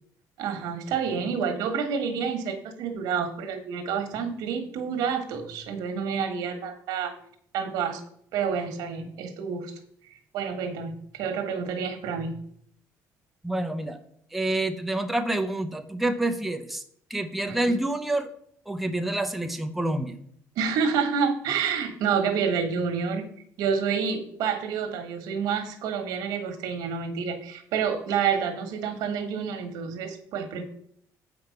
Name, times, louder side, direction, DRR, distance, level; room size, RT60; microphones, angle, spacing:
voice 1, 0.4-7.1 7.5-8.0 8.3-9.7 10.3-12.4 17.5-17.7 20.5-23.3 23.6-30.6, right 6 dB, 85° right, 7 dB, 1.4 m, -28 dB
voice 2, 13.4-14.0 14.3-16.8 17.1-18.3 18.7-20.2, right 1 dB, ahead, 5 dB, 0.6 m, -27 dB
7.8 x 5.2 x 5.7 m, 0.67 s
cardioid pair, 155°, 6 cm